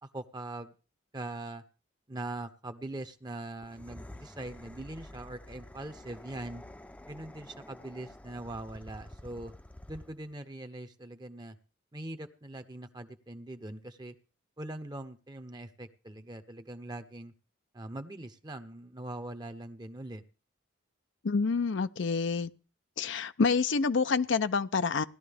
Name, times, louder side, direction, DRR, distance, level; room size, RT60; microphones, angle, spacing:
voice 1, 0.0-0.7 1.1-1.6 2.1-6.6 7.1-9.5 9.9-11.6 11.9-14.1 14.6-17.3 17.7-20.2, right 1 dB, 20° right, 0.8 m, -42 dB
sound 1, 3.5-10.3, left 1 dB, 5° left, 0.6 m, -49 dB
voice 2, 21.2-22.5 23.0-25.0, left 4 dB, 65° left, 0.5 m, -27 dB
17.5 x 12.0 x 3.5 m
head